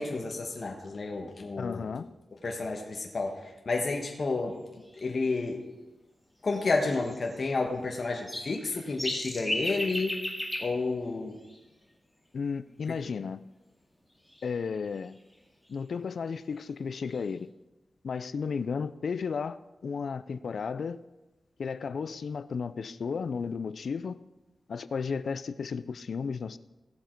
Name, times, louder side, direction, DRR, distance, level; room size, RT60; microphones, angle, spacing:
voice 1, 0.0-1.8 2.4-4.6 5.0-5.6 6.4-10.2 10.6-11.4, left 3 dB, 50° left, 1.3 m, -31 dB
voice 2, 1.6-2.1 12.3-13.4 14.4-15.2 15.7-17.5 18.0-21.0 21.6-24.2 24.7-26.6, left 5 dB, 70° left, 0.4 m, -33 dB
sound 1, 4.5-4.6 4.8-5.1 6.5-7.7 8.0-11.8 14.1-15.8 16.6-16.7 16.9-17.3, left 1 dB, 5° left, 2.1 m, -37 dB
16.0 x 7.1 x 4.5 m
wide cardioid pair, 90°, 0 cm